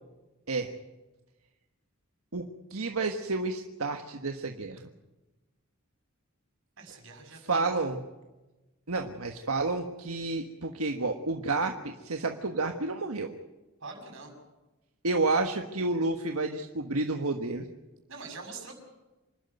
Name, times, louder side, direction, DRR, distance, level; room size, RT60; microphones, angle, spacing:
voice 1, 2.7-4.9 7.5-8.0 8.9-13.3 15.0-17.7, right 3 dB, 90° right, 5 dB, 1.5 m, -30 dB
voice 2, 6.8-7.9 13.8-14.3 18.1-18.7, right 4 dB, 65° right, 3 dB, 6.8 m, -44 dB
27.0 x 12.0 x 9.4 m, 1.1 s
head